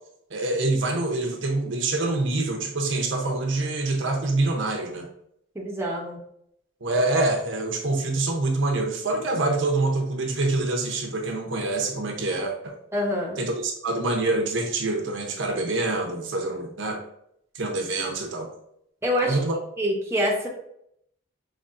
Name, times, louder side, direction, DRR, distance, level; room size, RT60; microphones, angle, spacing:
voice 1, 0.3-5.1 6.8-12.7 13.4-17.0 17.5-18.5 19.2-19.5, right 2 dB, 70° right, 3 dB, 0.8 m, -26 dB
voice 2, 5.5-6.2 12.9-13.4 19.0-19.4 19.8-20.5, equal, 10° right, -3 dB, 0.7 m, -25 dB
5.3 x 3.1 x 2.5 m, 0.73 s
head